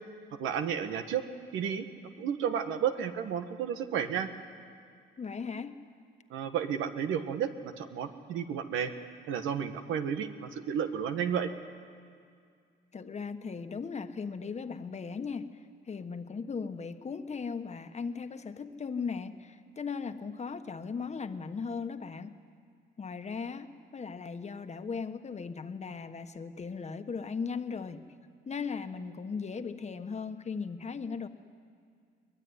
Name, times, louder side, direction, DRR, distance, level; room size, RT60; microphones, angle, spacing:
voice 1, 0.4-1.2 1.5-1.8 2.2-4.3 6.3-8.9 9.3-11.5, right 8 dB, 90° right, 7 dB, 1.6 m, -32 dB
voice 2, 5.2-5.8 12.9-22.4 23.0-28.0 28.4-31.3, left 5 dB, 35° left, 8 dB, 1.4 m, -37 dB
23.0 x 20.5 x 9.7 m, 2.2 s
cardioid pair, 90°, 20 cm